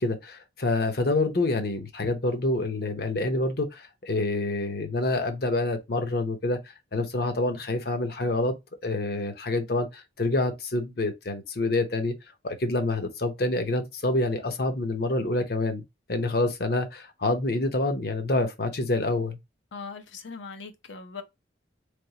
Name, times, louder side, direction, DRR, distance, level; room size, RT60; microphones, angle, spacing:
voice 1, 0.0-6.6 6.9-8.5 8.8-12.1 12.4-15.8 16.1-19.4, left 2 dB, 55° left, 0.8 m, -27 dB
voice 2, 19.7-21.2, left 5 dB, 85° left, 0.8 m, -40 dB
3.5 x 3.5 x 2.9 m
head